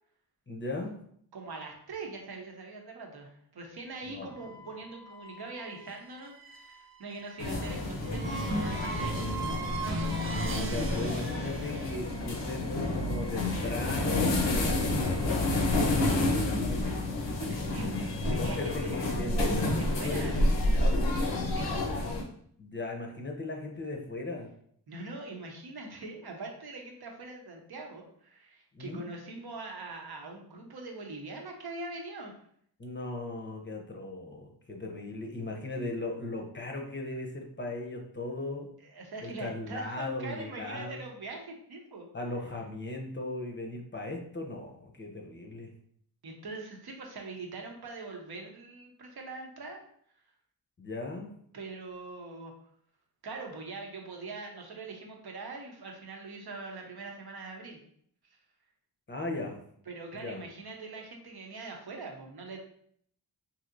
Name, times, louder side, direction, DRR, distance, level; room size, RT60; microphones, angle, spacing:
voice 1, 0.5-1.0 4.1-4.3 10.4-16.9 18.4-21.2 22.6-24.5 28.7-29.1 32.8-38.7 39.2-41.0 42.1-45.7 50.8-51.4 59.1-59.6 60.2-60.4, left 2 dB, 25° left, 1 dB, 0.6 m, -37 dB
voice 2, 1.3-9.3 17.3-18.9 19.7-20.4 21.5-22.0 24.9-32.3 38.8-42.1 46.2-49.8 51.5-52.5 53.2-57.8 59.9-62.6, right 3 dB, 60° right, 1 dB, 0.8 m, -42 dB
sound 1, 4.3-12.0, right 4 dB, 30° right, 0.5 m, -42 dB
sound 2, 7.4-22.2, left 1 dB, 80° left, 0.7 m, -29 dB
sound 3, 8.0-12.9, equal, 10° right, 0.8 m, -36 dB
3.1 x 2.7 x 2.6 m, 0.65 s
cardioid pair, 50°, 43 cm